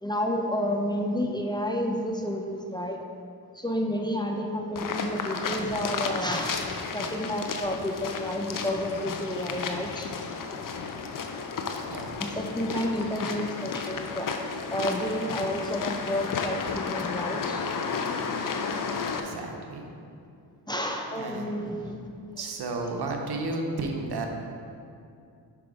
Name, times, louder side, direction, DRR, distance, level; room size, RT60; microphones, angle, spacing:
voice 1, 0.0-3.0 3.5-6.7 6.9-10.1 12.2-14.3 14.5-17.6 20.7-21.9 22.4-22.5, equal, 10° left, 2 dB, 0.6 m, -30 dB
sound 1, 4.8-19.2, left 5 dB, 55° left, 0.6 m, -33 dB
voice 2, 11.9-12.3 19.2-19.9 21.1-21.7 22.4-24.3, right 2 dB, 75° right, 2 dB, 0.9 m, -33 dB
6.0 x 4.9 x 4.8 m, 2.4 s
cardioid pair, 75°, 40 cm